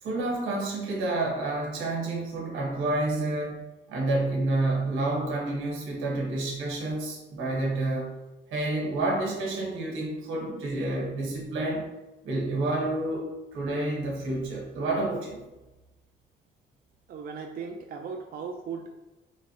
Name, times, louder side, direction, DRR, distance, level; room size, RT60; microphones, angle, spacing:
voice 1, 0.0-3.6 3.9-8.1 8.5-11.9 12.2-15.4, right 2 dB, 85° right, -2 dB, 1.2 m, -29 dB
voice 2, 17.1-18.9, right 5 dB, 50° right, 2 dB, 0.4 m, -37 dB
4.0 x 3.0 x 2.8 m, 1.0 s
cardioid pair, 90°, 20 cm